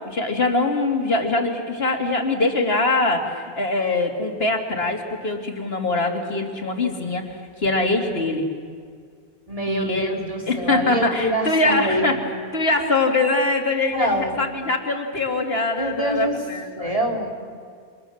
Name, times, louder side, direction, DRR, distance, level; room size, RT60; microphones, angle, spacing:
voice 1, 0.1-8.5 9.7-10.1 10.5-12.1 12.5-16.9, left 2 dB, 75° left, 3 dB, 2.8 m, -23 dB
voice 2, 9.5-12.2 13.9-14.4 15.8-16.4 16.8-17.3, right 1 dB, 35° right, 0 dB, 3.6 m, -25 dB
29.5 x 26.5 x 7.2 m, 2.1 s
omnidirectional pair, 1.0 m